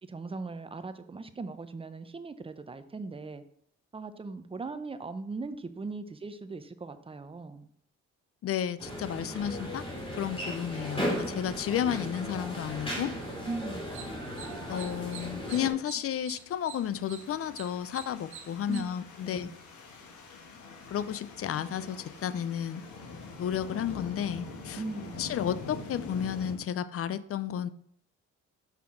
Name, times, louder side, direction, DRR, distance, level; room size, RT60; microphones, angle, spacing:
voice 1, 0.0-3.4 3.9-7.7 13.4-14.0 18.7-18.9 19.2-19.6 24.8-25.3, right 3 dB, 20° right, 10 dB, 0.6 m, -39 dB
voice 2, 8.4-9.8 10.1-13.1 14.7-19.5 20.9-22.8 23.4-24.8 25.2-27.7, left 9 dB, 50° left, 15 dB, 0.5 m, -32 dB
sound 1, 8.8-15.7, equal, 20° left, 3.0 m, -36 dB
sound 2, 13.9-18.8, right 8 dB, 70° right, 0.9 m, -48 dB
sound 3, 16.2-26.5, left 4 dB, 75° left, 1.5 m, -45 dB
5.9 x 5.7 x 3.7 m, 0.64 s
cardioid pair, 90°, 30 cm